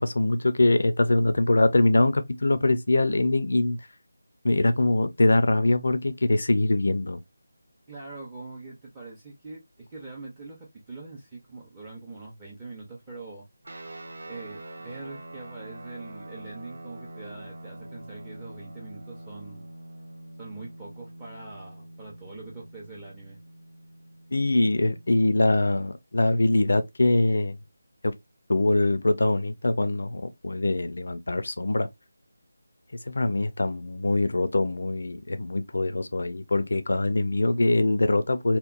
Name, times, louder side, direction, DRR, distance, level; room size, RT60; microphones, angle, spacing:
voice 1, 0.0-3.8 4.4-7.2 24.3-27.6 28.0-28.2 28.5-31.9 33.1-38.6, left 2 dB, 70° left, 0.4 m, -23 dB
voice 2, 7.9-13.4 14.3-19.7 20.4-23.4, right 3 dB, 15° right, 0.5 m, -43 dB
sound 1, 13.6-25.4, right 1 dB, 60° right, 0.7 m, -44 dB
2.9 x 2.0 x 2.4 m
figure-of-eight pair, 170°, 0 cm